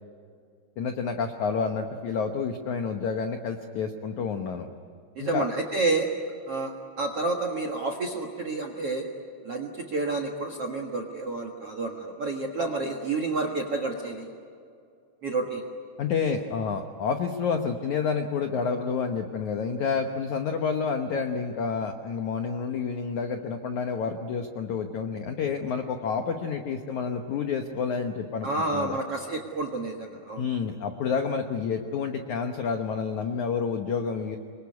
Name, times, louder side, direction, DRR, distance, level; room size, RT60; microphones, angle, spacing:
voice 1, 0.8-4.7 5.2-5.5 16.0-29.0 30.4-34.4, left 5 dB, 75° left, 5 dB, 1.7 m, -29 dB
voice 2, 5.1-6.1 6.5-9.1 9.4-14.3 15.2-15.6 28.4-30.4, right 3 dB, 55° right, 4 dB, 1.7 m, -29 dB
26.5 x 23.0 x 9.5 m, 2.3 s
omnidirectional pair, 5.1 m